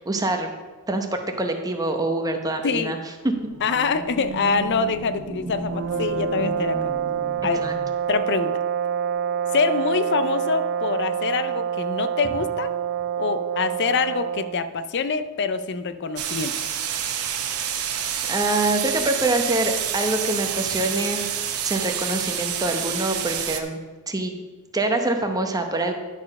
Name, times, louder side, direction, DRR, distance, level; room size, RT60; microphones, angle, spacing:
voice 1, 0.1-0.5 0.9-3.0 7.5-7.7 18.3-21.3 21.6-23.8 24.1-24.3 24.7-25.9, right 2 dB, 15° right, 4 dB, 0.8 m, -25 dB
voice 2, 2.6-2.9 3.6-6.8 7.4-7.7 8.1-8.6 9.5-12.7 13.2-16.5, left 5 dB, 55° left, 12 dB, 0.5 m, -25 dB
sound 1, 3.2-8.1, right 2 dB, 40° right, 1.3 m, -35 dB
sound 2, 5.7-14.6, right 8 dB, 55° right, 0.3 m, -27 dB
sound 3, 16.2-23.6, right 9 dB, 80° right, 0.8 m, -28 dB
11.0 x 4.3 x 5.3 m, 1.3 s
head